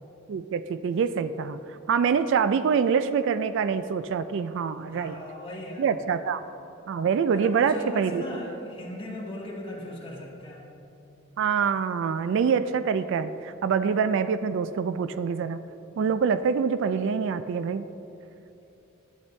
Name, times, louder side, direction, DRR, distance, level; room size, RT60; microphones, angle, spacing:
voice 1, 0.3-1.6 1.9-5.1 5.8-6.4 6.9-8.2 11.4-15.6 16.0-17.9, right 6 dB, 65° right, 12 dB, 0.3 m, -25 dB
voice 2, 4.9-5.9 7.3-10.8, left 1 dB, 25° left, -3 dB, 1.6 m, -38 dB
11.5 x 8.5 x 3.2 m, 3.0 s
head